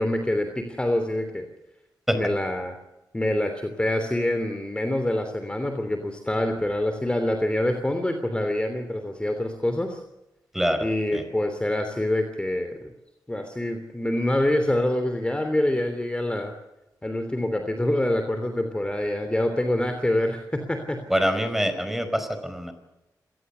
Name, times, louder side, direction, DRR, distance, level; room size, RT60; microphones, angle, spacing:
voice 1, 0.0-1.5 2.1-2.7 3.1-10.0 10.8-12.9 13.3-16.5 17.0-21.0, left 1 dB, 15° left, 6 dB, 3.1 m, -26 dB
voice 2, 10.5-10.9 11.1-11.2 21.1-22.7, equal, 5° right, 9 dB, 4.8 m, -25 dB
27.0 x 19.0 x 6.9 m, 0.96 s
cardioid pair, 85°, 7 cm